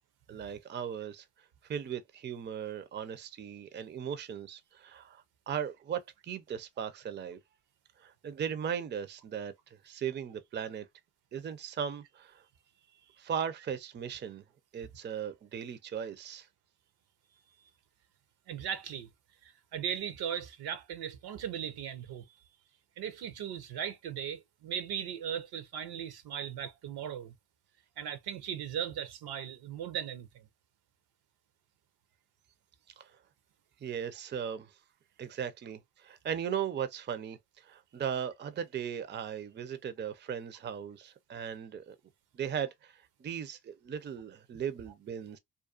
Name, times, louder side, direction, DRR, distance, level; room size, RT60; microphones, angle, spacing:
voice 1, 0.3-1.2 1.7-6.0 6.3-7.4 8.0-9.5 9.8-10.9 11.3-12.4 13.2-14.4 14.7-16.5 33.0-33.1 33.8-34.7 35.2-37.4 37.7-42.0 42.3-42.9 43.2-45.4, right 8 dB, 25° right, 0.4 m, -37 dB
voice 2, 18.5-19.1 19.4-22.4 23.0-27.3 28.0-30.5, right 9 dB, 70° right, 0.6 m, -38 dB
2.5 x 2.3 x 2.4 m
supercardioid pair, 55°, 40 cm